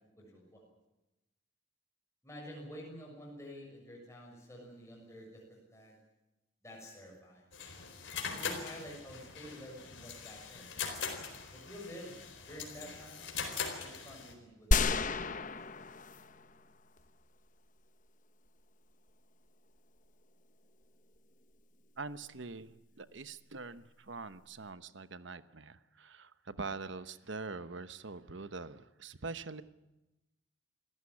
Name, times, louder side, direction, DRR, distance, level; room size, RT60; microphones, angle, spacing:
voice 1, 0.2-0.6 2.2-6.0 6.6-7.5 8.3-10.7 11.5-13.3 13.8-15.5, equal, 15° left, -2 dB, 6.8 m, -49 dB
sound 1, 7.5-14.3, left 6 dB, 65° left, 4.3 m, -41 dB
sound 2, 14.7-16.6 17.0-17.1, left 3 dB, 40° left, 0.9 m, -31 dB
voice 2, 22.0-29.6, right 4 dB, 65° right, 13 dB, 1.0 m, -44 dB
27.5 x 15.0 x 9.8 m, 0.99 s
head